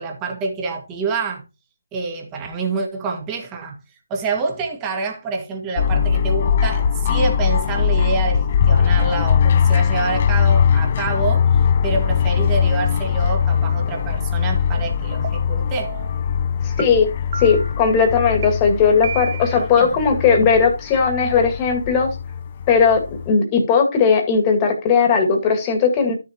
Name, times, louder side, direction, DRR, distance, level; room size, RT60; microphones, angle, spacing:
voice 1, 0.0-1.4 1.9-3.8 4.1-15.9 19.6-20.0, right 4 dB, 15° right, 2.1 m, -27 dB
sound 1, 5.8-23.3, left 7 dB, 35° left, 0.6 m, -20 dB
sound 2, 15.2-15.3 15.8-16.2 16.8-16.9 17.3-17.8 18.4-18.5 19.0-19.6, right 6 dB, 35° right, 1.2 m, -30 dB
voice 2, 16.6-17.1 17.4-22.1 22.7-26.1, left 5 dB, 20° left, 2.1 m, -17 dB
12.5 x 7.0 x 2.9 m
figure-of-eight pair, 155°, 0 cm